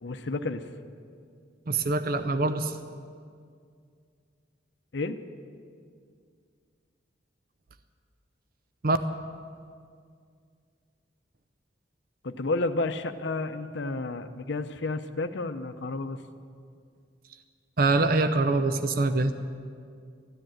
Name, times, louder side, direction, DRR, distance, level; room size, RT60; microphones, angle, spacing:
voice 1, 0.0-0.6 4.9-5.2 12.2-16.2, left 2 dB, 70° left, 8 dB, 0.7 m, -31 dB
voice 2, 1.7-2.8 8.8-9.0 17.8-19.3, right 3 dB, 55° right, 9 dB, 0.6 m, -24 dB
13.5 x 10.0 x 9.1 m, 2.2 s
head